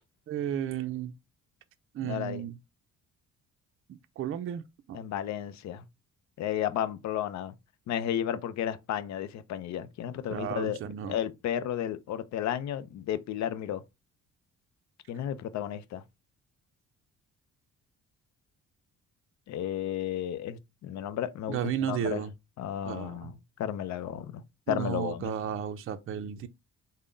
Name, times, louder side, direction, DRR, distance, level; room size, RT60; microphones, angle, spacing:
voice 1, 0.3-1.1 1.9-2.5 3.9-4.6 4.9-5.0 10.3-11.2 21.5-22.3 22.8-23.3 24.7-26.5, right 9 dB, 45° right, 0.4 m, -33 dB
voice 2, 2.0-2.4 4.9-5.8 6.4-7.5 7.9-10.8 11.1-13.8 15.1-16.0 19.5-22.3 22.6-23.3 23.6-24.4 24.7-25.3, left 10 dB, 65° left, 0.5 m, -33 dB
3.5 x 2.1 x 3.8 m
cardioid pair, 90°, 30 cm